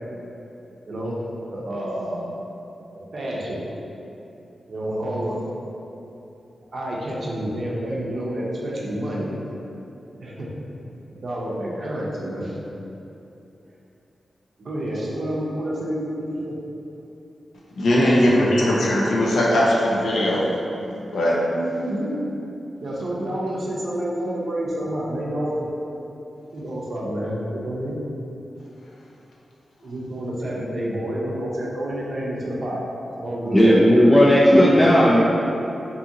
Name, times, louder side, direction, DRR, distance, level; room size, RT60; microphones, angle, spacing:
voice 1, 0.9-1.2 1.5-2.3 3.1-3.7 4.7-5.4 6.7-9.3 10.2-10.5 11.1-12.6 14.6-16.5 17.9-18.7 21.5-22.2 22.8-25.7 26.5-28.0 29.8-32.8 33.2-33.7 34.5-35.0, right 1 dB, 60° right, -5 dB, 0.6 m, -29 dB
voice 2, 17.8-20.4 21.1-21.4, left 1 dB, 80° left, -5 dB, 0.5 m, -19 dB
voice 3, 33.5-35.2, equal, 15° left, -6 dB, 0.3 m, -14 dB
2.7 x 2.5 x 2.7 m, 2.8 s
wide cardioid pair, 85°, 0 cm